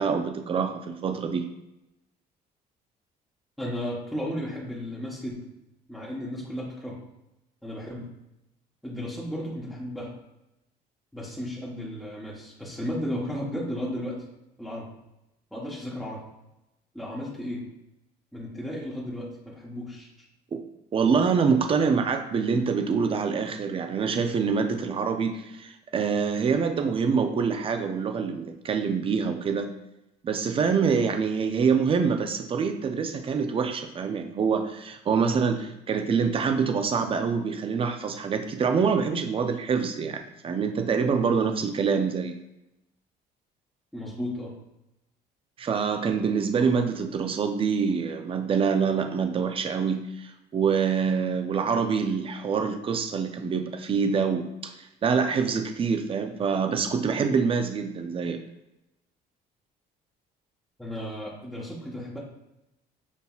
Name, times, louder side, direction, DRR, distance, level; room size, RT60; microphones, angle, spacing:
voice 1, 0.0-1.4 20.5-20.6 20.9-29.7 30.2-42.4 45.6-58.4, right 5 dB, 35° right, 6 dB, 0.5 m, -25 dB
voice 2, 3.6-5.4 5.9-7.0 7.6-8.1 8.8-10.1 11.1-14.2 14.6-14.9 15.5-16.2 16.9-17.7 18.3-20.1 43.9-44.5 60.8-62.2, equal, ahead, -6 dB, 1.0 m, -34 dB
7.1 x 2.6 x 2.4 m, 0.89 s
cardioid pair, 110°, 17 cm